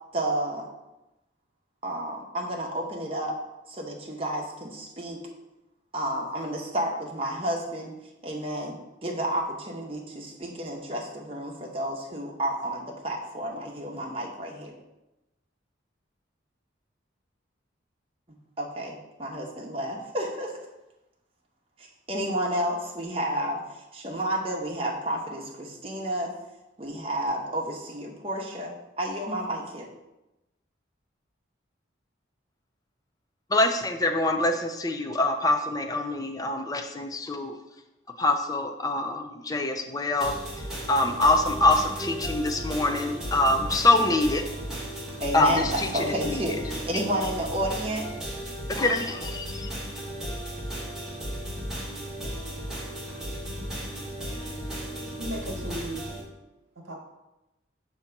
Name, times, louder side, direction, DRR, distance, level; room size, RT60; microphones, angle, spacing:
voice 1, 0.1-0.7 1.8-3.4 3.7-5.2 5.9-7.9 8.2-14.7 18.6-20.5 21.8-26.3 26.8-29.9 45.2-48.3, right 1 dB, 30° right, -1 dB, 1.0 m, -31 dB
voice 2, 33.5-37.6 38.2-44.6 45.3-46.5 48.7-49.7, left 2 dB, 20° left, 5 dB, 0.4 m, -25 dB
sound 1, 40.2-56.2, equal, 5° right, 1.4 m, -35 dB
voice 3, 55.2-56.1 56.7-56.9, right 1 dB, 85° right, -1 dB, 1.2 m, -35 dB
6.3 x 2.9 x 5.7 m, 0.97 s
head